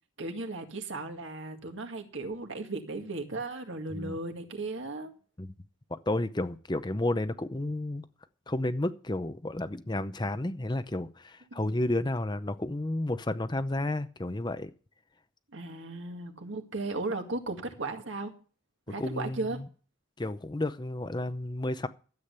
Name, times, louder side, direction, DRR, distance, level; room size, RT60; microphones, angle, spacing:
voice 1, 0.2-5.1 11.5-11.7 15.5-18.3 18.9-19.6, right 2 dB, 65° right, 2.0 m, -36 dB
voice 2, 5.9-8.0 8.5-14.7 19.0-19.7 20.2-21.9, left 1 dB, 20° left, 0.6 m, -31 dB
13.0 x 8.5 x 6.8 m
head